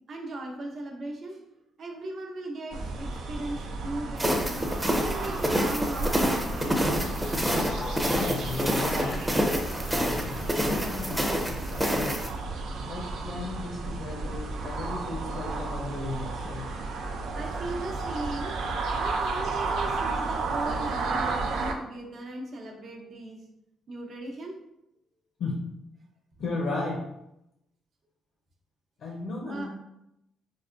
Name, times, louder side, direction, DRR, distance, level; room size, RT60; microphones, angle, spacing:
voice 1, 0.1-4.7 5.0-6.8 17.3-23.4 23.9-24.6 29.5-29.7, right 2 dB, 55° right, 0 dB, 0.8 m, -37 dB
sound 1, 2.7-21.7, right 3 dB, 80° right, 0.4 m, -33 dB
sound 2, 4.2-12.3, equal, 10° right, 0.6 m, -28 dB
sound 3, 5.2-11.3, left 2 dB, 40° left, 0.3 m, -40 dB
voice 2, 8.0-9.2 10.5-12.2 12.8-16.7 25.4-25.6 26.4-27.1 29.0-29.7, left 3 dB, 70° left, -1 dB, 0.6 m, -35 dB
4.7 x 2.2 x 2.5 m, 0.84 s
cardioid pair, 90°, 0 cm